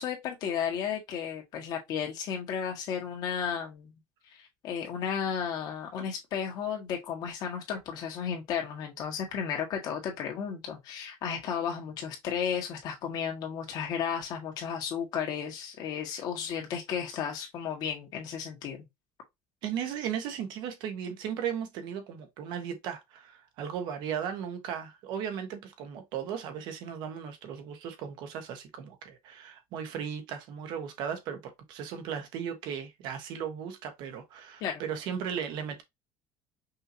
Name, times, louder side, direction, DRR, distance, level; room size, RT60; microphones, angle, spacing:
voice 1, 0.0-3.9 4.4-18.8 34.6-34.8, left 7 dB, 50° left, 1.8 m, -33 dB
voice 2, 19.6-35.8, right 8 dB, 55° right, 1.3 m, -36 dB
5.5 x 2.8 x 2.8 m
cardioid pair, 160°, 9 cm